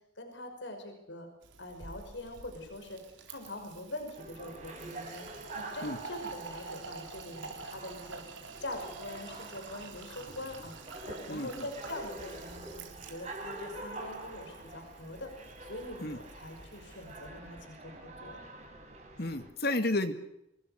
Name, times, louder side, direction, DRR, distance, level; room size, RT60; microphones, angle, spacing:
voice 1, 0.2-1.3 1.6-3.0 3.3-5.3 5.5-8.2 8.6-10.7 11.1-15.3 15.6-18.4, left 1 dB, 70° left, 5 dB, 5.6 m, -43 dB
Fill (with liquid), 1.4-17.3, right 4 dB, 75° right, 4.0 m, -49 dB
sound 1, 4.1-19.5, right 2 dB, 35° right, 5.4 m, -46 dB
voice 2, 11.3-11.7 16.0-16.2 19.2-20.1, left 2 dB, 50° left, 9 dB, 2.1 m, -31 dB
26.5 x 20.5 x 6.7 m, 0.82 s
head